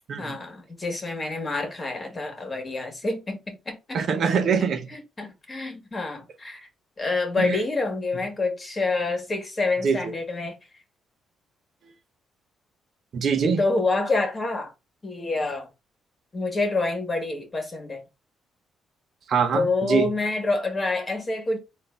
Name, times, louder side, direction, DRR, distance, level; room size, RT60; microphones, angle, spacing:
voice 1, 0.2-4.0 4.9-6.6 7.0-10.6 13.6-14.7 15.0-15.7 16.3-18.0 19.5-21.6, left 3 dB, 25° left, 1.7 m, -27 dB
voice 2, 3.9-4.9 7.4-7.6 9.8-10.1 13.1-13.6 19.3-20.1, right 6 dB, 60° right, 0.7 m, -23 dB
4.0 x 2.7 x 3.8 m
cardioid pair, 90°, 0 cm